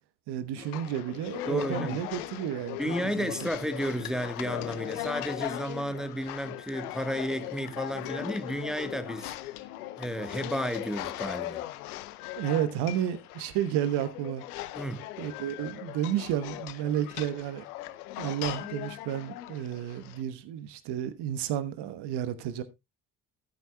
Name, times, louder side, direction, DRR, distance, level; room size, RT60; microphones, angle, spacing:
voice 1, 0.3-3.3 12.4-14.4 15.2-17.6 18.2-22.6, right 10 dB, 60° right, 1.3 m, -31 dB
sound 1, 0.6-20.2, left 15 dB, 75° left, 0.7 m, -39 dB
voice 2, 1.5-2.0 2.8-9.3 10.0-11.6 14.8-15.0, equal, ahead, 1.4 m, -32 dB
15.0 x 9.2 x 2.3 m
figure-of-eight pair, 45°, 45 cm